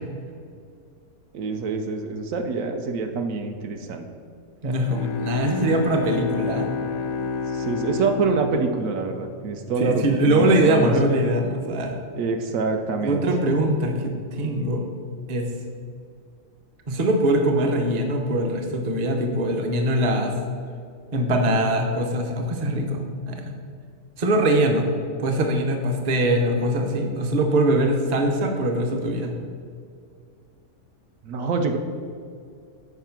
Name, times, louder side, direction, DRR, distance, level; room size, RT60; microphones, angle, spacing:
voice 1, 1.3-4.0 4.6-4.8 7.5-11.2 12.2-13.2 31.2-31.8, right 4 dB, 75° right, 5 dB, 1.0 m, -26 dB
voice 2, 4.6-6.7 9.8-12.0 13.0-14.8 15.3-15.5 16.9-20.4 21.1-23.6 24.2-24.9 25.2-29.3, right 1 dB, 40° right, 3 dB, 0.7 m, -22 dB
Bowed string instrument, 4.8-9.8, left 4 dB, 90° left, 1.1 m, -30 dB
5.6 x 4.9 x 5.9 m, 2.3 s
omnidirectional pair, 1.5 m